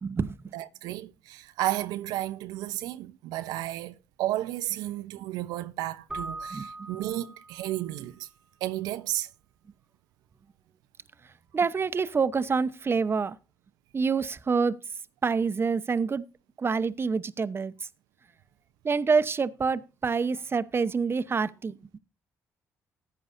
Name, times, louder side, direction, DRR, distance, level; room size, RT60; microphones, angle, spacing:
voice 1, 0.0-0.4 6.5-6.9 11.5-13.3 13.9-14.8 15.2-16.2 16.6-17.7 18.8-21.7, right 5 dB, 35° right, 0.8 m, -27 dB
voice 2, 0.5-8.3 8.6-9.3, right 14 dB, 90° right, 0.5 m, -33 dB
Keyboard (musical), 6.1-7.9, right 2 dB, 10° right, 1.5 m, -40 dB
14.5 x 9.5 x 2.6 m
supercardioid pair, 65°, 7 cm